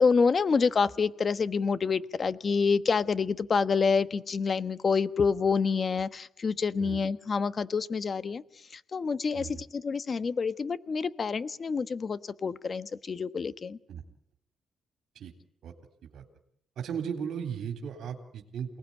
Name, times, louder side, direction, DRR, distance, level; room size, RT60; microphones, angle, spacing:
voice 1, 0.0-8.4 8.7-13.8, left 5 dB, 35° left, 13 dB, 1.2 m, -27 dB
voice 2, 9.3-9.6 13.9-14.0 15.2-15.3 15.6-15.7 16.0-16.2 16.8-18.8, right 7 dB, 65° right, 5 dB, 3.5 m, -36 dB
28.5 x 19.0 x 9.9 m, 0.77 s
cardioid pair, 135°, 0 cm